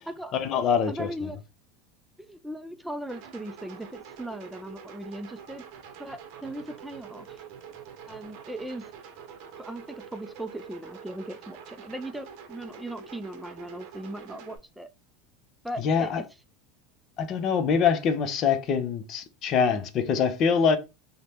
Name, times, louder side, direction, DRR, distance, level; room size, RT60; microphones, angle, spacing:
voice 1, 0.3-1.1 15.8-16.2 17.2-20.8, left 6 dB, 45° left, 0.5 m, -24 dB
voice 2, 0.9-1.4 2.3-5.6 6.0-7.4 8.1-8.9 9.6-14.9 15.6-16.1, right 1 dB, 5° right, 0.3 m, -38 dB
sound 1, 3.1-14.6, right 7 dB, 60° right, 0.6 m, -46 dB
2.7 x 2.1 x 3.3 m
hypercardioid pair, 100°, 0 cm